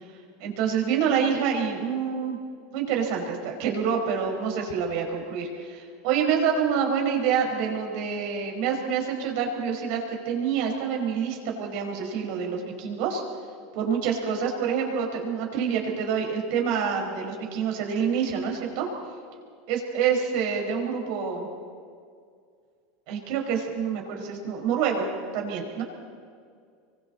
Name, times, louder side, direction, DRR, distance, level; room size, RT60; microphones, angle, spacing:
voice 1, 0.4-2.4 2.7-13.2 13.7-18.9 19.7-21.5 23.1-25.1 25.3-25.8, right 7 dB, 60° right, 2 dB, 5.2 m, -27 dB
26.5 x 23.5 x 4.2 m, 2.2 s
supercardioid pair, 130°, 0 cm